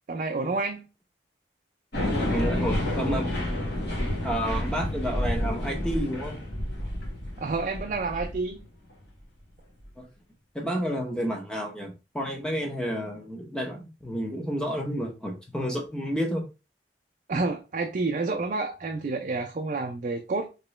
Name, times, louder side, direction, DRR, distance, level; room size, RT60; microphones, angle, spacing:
voice 1, 0.1-0.8 7.4-8.6 17.3-20.5, right 3 dB, 45° right, 0.4 m, -29 dB
sound 1, 1.9-8.5, left 1 dB, 75° left, 1.4 m, -29 dB
voice 2, 2.3-3.4 4.2-6.4 10.0-10.1 10.5-16.4, equal, 5° left, 0.7 m, -30 dB
3.1 x 3.0 x 3.1 m
head